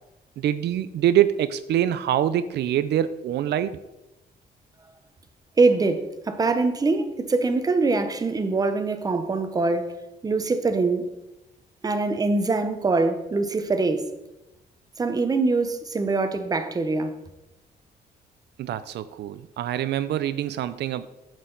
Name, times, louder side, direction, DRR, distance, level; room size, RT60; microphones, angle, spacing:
voice 1, 0.4-3.8 18.6-21.1, right 11 dB, 80° right, 0.4 m, -24 dB
voice 2, 5.6-9.9 10.2-11.1 11.8-14.1 15.0-17.1, right 3 dB, 20° right, 0.7 m, -23 dB
9.4 x 6.3 x 3.8 m
cardioid pair, 145°, 17 cm